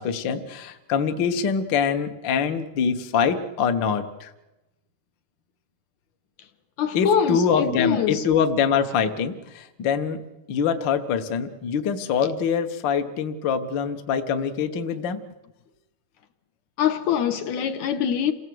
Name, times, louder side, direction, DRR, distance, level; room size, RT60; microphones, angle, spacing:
voice 1, 0.0-4.3 6.9-10.2 10.5-15.2, left 6 dB, 55° left, 1.3 m, -24 dB
voice 2, 6.8-8.2 16.8-18.3, left 8 dB, 70° left, 2.2 m, -24 dB
28.0 x 17.5 x 7.8 m
omnidirectional pair, 3.7 m